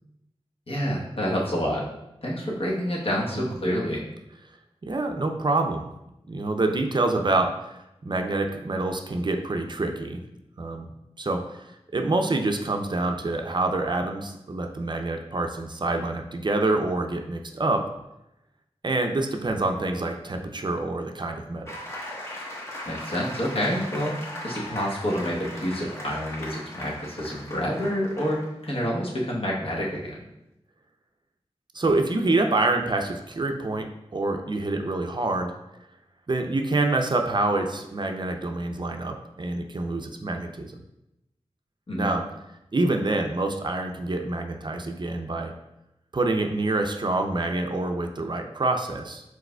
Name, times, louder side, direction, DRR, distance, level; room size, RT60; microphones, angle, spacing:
voice 1, 0.7-1.8 2.2-4.0 22.9-24.1 24.4-30.2 41.9-42.1, equal, 60° left, -3 dB, 1.1 m, -28 dB
voice 2, 4.8-5.9 6.3-10.2 10.6-10.9 11.2-11.7 11.9-17.9 18.8-21.7 31.7-35.5 36.3-40.8 42.0-42.3 42.7-45.5 46.1-49.2, right 2 dB, 45° right, 4 dB, 0.4 m, -26 dB
sound 1, 21.6-28.7, left 1 dB, 25° left, 1.1 m, -38 dB
4.7 x 4.1 x 2.2 m, 0.88 s
cardioid pair, 45°, 11 cm